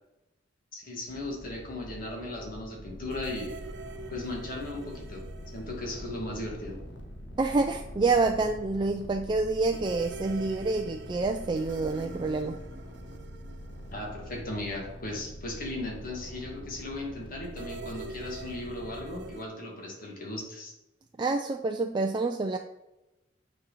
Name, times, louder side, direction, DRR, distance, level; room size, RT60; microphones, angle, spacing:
voice 1, 0.7-3.5 4.1-5.2 5.5-6.8 13.9-20.7, left 2 dB, 50° left, -1 dB, 2.0 m, -37 dB
sound 1, 1.1-14.1, equal, 20° left, 1.7 m, -49 dB
sound 2, 2.9-19.3, equal, 70° left, 1.0 m, -45 dB
sound 3, 3.1-6.9 7.1-7.2 9.7-15.1 17.4-19.5, right 3 dB, 65° right, 0.6 m, -46 dB
voice 2, 7.4-12.6 21.2-22.6, right 3 dB, 25° right, 4 dB, 0.4 m, -27 dB
9.2 x 4.4 x 4.1 m, 0.95 s
head